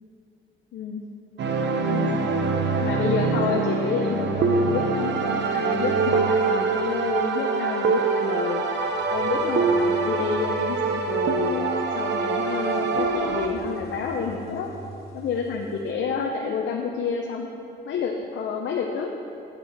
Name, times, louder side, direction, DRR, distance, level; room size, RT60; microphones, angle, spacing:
voice 1, 0.7-1.0 1.8-2.3 2.8-8.6 9.1-11.7 11.9-14.7 15.1-17.5 17.8-19.1, left 5 dB, 70° left, 1 dB, 0.8 m, -29 dB
sound 1, 1.4-13.5, right 4 dB, 60° right, 0.8 m, -24 dB
sound 2, 7.3-15.9, right 1 dB, 55° left, 1.2 m, -44 dB
8.8 x 7.7 x 4.8 m, 2.6 s
cardioid pair, 90°, 20 cm